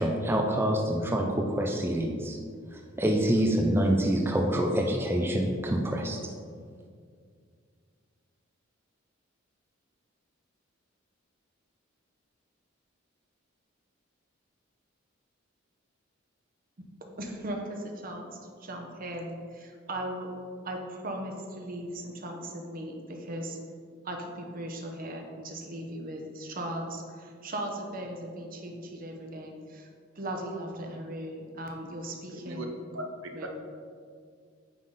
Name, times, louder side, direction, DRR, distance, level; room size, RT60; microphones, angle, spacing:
voice 1, 0.0-2.4 2.7-6.2, right 1 dB, 10° right, 1 dB, 0.4 m, -26 dB
voice 2, 17.2-20.3 20.6-23.6 24.0-29.9 30.2-32.8 33.3-33.5, right 1 dB, 45° right, 2 dB, 0.9 m, -38 dB
voice 3, 32.3-32.7 32.9-33.5, right 1 dB, 75° right, 3 dB, 0.8 m, -38 dB
9.0 x 3.8 x 3.9 m, 2.1 s
head